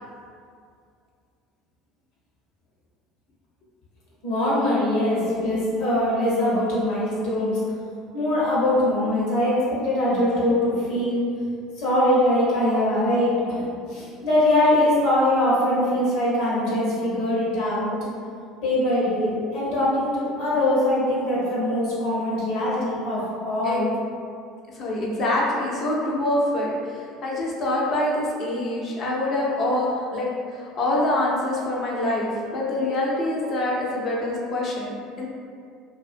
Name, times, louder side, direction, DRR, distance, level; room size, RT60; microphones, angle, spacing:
voice 1, 4.2-7.6 8.1-11.2 11.8-13.6 13.9-18.0 18.6-23.9, left 1 dB, 65° left, -7 dB, 0.9 m, -22 dB
voice 2, 24.8-35.3, left 1 dB, 45° left, -3 dB, 0.6 m, -25 dB
2.4 x 2.3 x 2.5 m, 2.3 s
hypercardioid pair, 65°, 0 cm